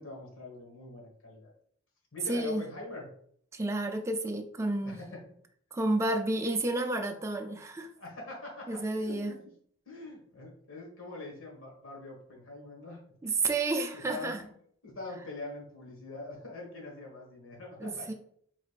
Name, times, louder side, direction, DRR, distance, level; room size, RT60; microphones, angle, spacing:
voice 1, 0.0-1.5 2.1-3.1 4.8-5.2 8.0-9.4 9.8-13.0 13.9-14.5 14.8-18.1, left 2 dB, 70° left, -1 dB, 1.5 m, -43 dB
voice 2, 2.3-2.6 3.5-5.0 5.7-7.9 8.7-9.4 13.2-14.4 17.8-18.1, right 2 dB, 15° right, 4 dB, 0.3 m, -31 dB
4.7 x 4.1 x 2.4 m, 0.65 s
head